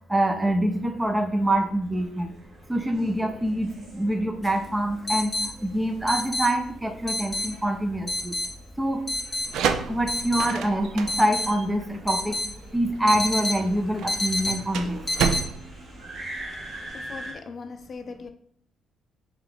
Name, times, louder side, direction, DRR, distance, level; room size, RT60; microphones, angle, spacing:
voice 1, 0.1-2.3 2.7-8.4 8.8-9.1 9.9-12.4 12.7-15.1, right 1 dB, 10° right, 0.5 m, -25 dB
sound 1, 0.7-17.3, right 1 dB, 50° right, 1.1 m, -45 dB
sound 2, 4.4-4.5 5.1-5.5 6.1-6.5 7.1-7.5 8.1-8.5 9.1-9.5 10.1-10.5 11.1-11.5 12.1-12.5 13.1-13.6 14.1-14.5 15.1-15.4, left 1 dB, 20° left, 0.8 m, -27 dB
sound 3, 9.3-16.9, right 7 dB, 85° right, 0.3 m, -31 dB
voice 2, 16.7-18.3, left 5 dB, 45° left, 0.4 m, -40 dB
3.2 x 2.9 x 3.9 m
cardioid pair, 90°, 0 cm